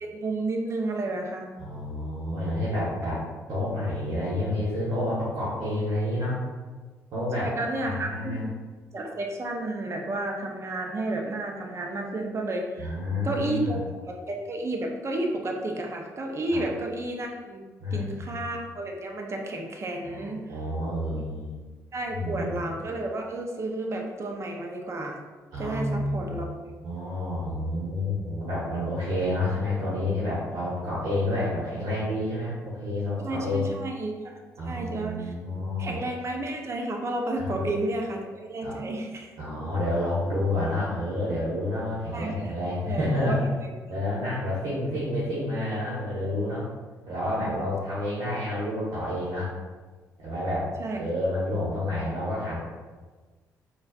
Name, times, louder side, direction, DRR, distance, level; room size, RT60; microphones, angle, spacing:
voice 1, 0.0-1.5 7.4-8.5 8.9-13.0 13.2-13.8 14.1-17.6 17.9-20.4 21.9-25.2 25.6-26.6 33.2-34.4 34.7-35.3 35.8-39.3 42.1-42.5 42.9-43.4 50.8-51.0, right 2 dB, 40° right, 1 dB, 0.6 m, -31 dB
voice 2, 1.6-3.2 3.5-6.4 7.1-7.5 7.8-8.4 12.8-13.8 16.5-16.6 17.8-18.4 20.0-21.6 22.1-22.6 25.5-26.6 26.8-33.6 34.6-36.0 37.4-37.7 38.6-38.8 39.4-43.4 43.9-46.7 47.1-49.5 50.2-50.7 51.0-52.6, left 1 dB, 70° right, -8 dB, 1.0 m, -29 dB
4.3 x 2.3 x 2.4 m, 1.3 s
supercardioid pair, 60°, 7 cm